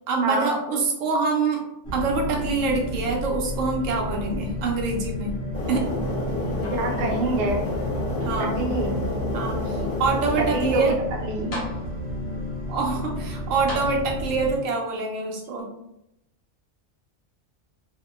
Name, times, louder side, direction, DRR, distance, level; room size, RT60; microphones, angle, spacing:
voice 1, 0.1-1.6 1.9-5.4 5.7-5.9 8.2-8.6 9.3-11.0 12.7-15.7, right 4 dB, 85° right, 1 dB, 1.0 m, -25 dB
sound 1, 1.8-14.5, left 1 dB, 20° right, 0.8 m, -32 dB
sound 2, 5.5-10.8, left 2 dB, 45° left, 0.8 m, -29 dB
sound 3, 6.6-7.3 7.7-8.7 9.4-9.5 11.0-11.1 11.5-12.3 13.7-14.5 15.6-15.7, left 1 dB, 70° left, 1.2 m, -38 dB
voice 2, 6.7-7.6 8.4-9.0 10.5-11.6, right 2 dB, 60° right, -1 dB, 0.8 m, -26 dB
2.7 x 2.5 x 2.4 m, 0.83 s
omnidirectional pair, 1.3 m